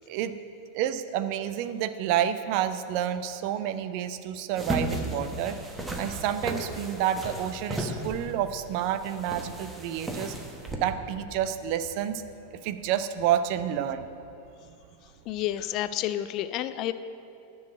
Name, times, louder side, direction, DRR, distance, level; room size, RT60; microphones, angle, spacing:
voice 1, 0.1-0.4 0.7-5.6 6.0-10.3 10.8-12.2 12.5-14.1, right 10 dB, 45° right, 11 dB, 0.5 m, -29 dB
sound 1, 4.5-10.8, right 1 dB, 10° right, 1.2 m, -34 dB
voice 2, 15.3-16.9, left 12 dB, 40° left, 13 dB, 0.4 m, -30 dB
10.5 x 6.3 x 7.4 m, 2.6 s
figure-of-eight pair, 90°, 0 cm